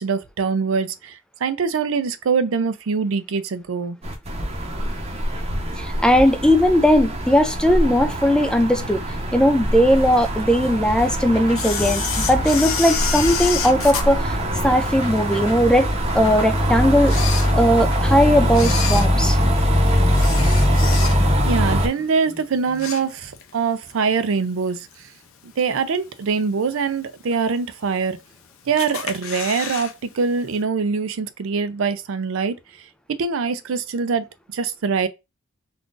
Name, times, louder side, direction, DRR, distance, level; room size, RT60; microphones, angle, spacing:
voice 1, 0.0-4.0 21.4-25.1 25.4-28.2 28.7-32.6 33.1-34.3 34.5-35.1, right 5 dB, 65° right, 0.4 m, -23 dB
sound 1, 4.0-21.9, equal, 30° right, 0.8 m, -22 dB
voice 2, 5.8-9.0 9.3-14.4 14.6-19.4, equal, 5° left, 0.3 m, -18 dB
sound 2, 10.9-20.7, equal, 30° left, 1.7 m, -35 dB
Camera, 11.5-15.1 15.6-15.7 16.4-16.5 17.0-18.0 18.5-21.5 21.8-22.1 22.5-23.5 23.9-24.0 24.9-25.0 25.6-26.0 26.4-26.5 26.7-26.8 27.0-27.1 27.8-28.4 28.8-29.9 30.2-30.3 30.6-30.7, left 9 dB, 65° left, 0.5 m, -29 dB
3.7 x 2.4 x 2.4 m
head